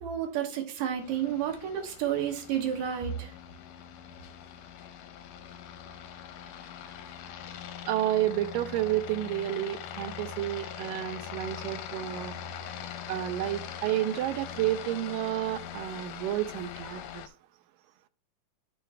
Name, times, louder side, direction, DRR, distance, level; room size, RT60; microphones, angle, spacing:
voice 1, 0.0-3.3, right 9 dB, 65° right, 3 dB, 2.4 m, -31 dB
Aircraft, 1.0-17.3, left 8 dB, 80° left, 2.2 m, -42 dB
voice 2, 7.8-12.3 13.1-17.2, right 13 dB, 90° right, 12 dB, 2.3 m, -30 dB
11.5 x 6.5 x 2.2 m, 0.41 s
omnidirectional pair, 3.8 m